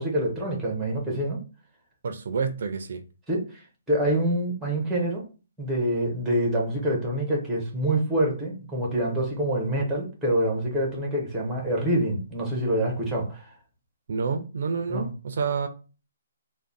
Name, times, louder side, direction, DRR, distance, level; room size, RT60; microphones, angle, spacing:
voice 1, 0.0-1.4 3.3-5.2 5.6-13.5 14.9-15.1, right 1 dB, ahead, 0.6 m, -26 dB
voice 2, 2.0-3.0 14.1-15.7, right 5 dB, 50° right, 0.4 m, -28 dB
3.5 x 2.0 x 3.9 m
hypercardioid pair, 180°, 0 cm